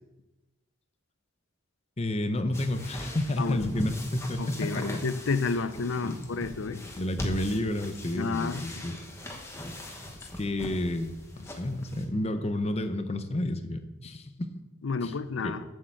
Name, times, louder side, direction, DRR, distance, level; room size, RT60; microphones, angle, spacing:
voice 1, 2.0-5.0 6.0-6.3 7.0-9.0 9.9-10.0 10.4-11.1 11.4-14.5 15.0-15.6, left 1 dB, 30° left, 0.7 m, -31 dB
sound 1, 2.5-12.1, left 1 dB, 15° left, 1.1 m, -40 dB
voice 2, 3.4-3.7 4.4-6.8 8.2-8.8 14.8-15.6, left 4 dB, 70° left, 0.6 m, -31 dB
7.7 x 6.6 x 7.4 m
head